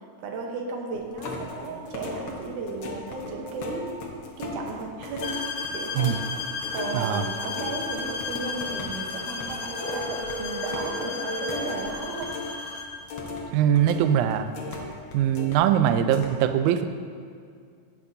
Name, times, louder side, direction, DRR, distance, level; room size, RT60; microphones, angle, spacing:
voice 1, 0.2-3.9 4.4-5.4 5.7-6.1 6.7-12.3, right 3 dB, 70° right, 0 dB, 2.3 m, -34 dB
sound 1, 0.9-12.6 12.8-15.6 15.9-16.3, left 3 dB, 85° left, 1.1 m, -38 dB
sound 2, 5.2-13.0, left 4 dB, 70° left, 1.8 m, -34 dB
sound 3, 9.7-11.8, equal, 40° right, 2.0 m, -35 dB
voice 2, 13.5-14.5 15.1-16.9, right 10 dB, 85° right, 8 dB, 1.7 m, -22 dB
18.0 x 6.0 x 2.7 m, 2.2 s
omnidirectional pair, 4.0 m